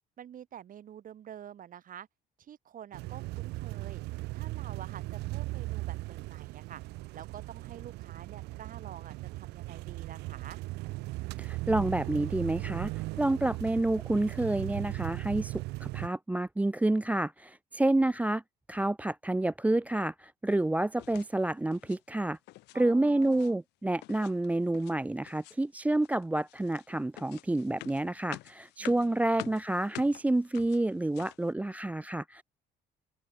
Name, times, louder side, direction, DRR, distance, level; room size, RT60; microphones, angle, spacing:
voice 1, 0.2-2.1 2.4-4.0 4.3-6.8 7.1-10.6 22.7-23.6 28.8-29.3, right 10 dB, 55° right, 5.5 m, -48 dB
sound 1, 2.9-16.1, right 21 dB, 90° right, 0.9 m, -38 dB
voice 2, 11.4-12.9 13.2-18.4 18.7-22.4 22.7-32.4, right 2 dB, 10° right, 0.6 m, -29 dB
sound 2, 21.0-21.3 21.7-22.0 22.4-22.8 23.1-23.5 24.0-25.0 25.3-25.7 26.0-31.5, left 20 dB, 85° left, 1.4 m, -48 dB
open air
cardioid pair, 110°, 17 cm